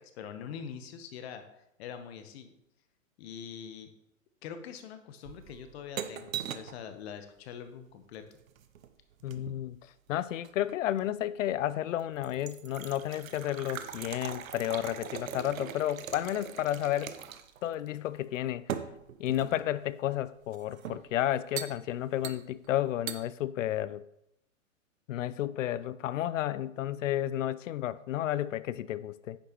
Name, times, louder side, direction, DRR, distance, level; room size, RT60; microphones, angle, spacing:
voice 1, 0.0-1.4 1.8-2.5 3.2-3.9 4.4-8.2, left 7 dB, 50° left, 1.2 m, -44 dB
sound 1, 5.3-6.8 8.3-9.7 10.4-11.1 11.6-11.7 12.0-17.6 17.9-18.0 18.7-19.7 20.5-21.1 21.6-21.8 22.2-22.7 23.1-23.2, right 9 dB, 85° right, 0.8 m, -41 dB
voice 2, 9.2-9.8 10.1-17.2 17.6-18.6 19.2-24.0 25.1-29.4, left 12 dB, 70° left, 0.5 m, -32 dB
9.6 x 6.5 x 3.1 m
hypercardioid pair, 130°, 40 cm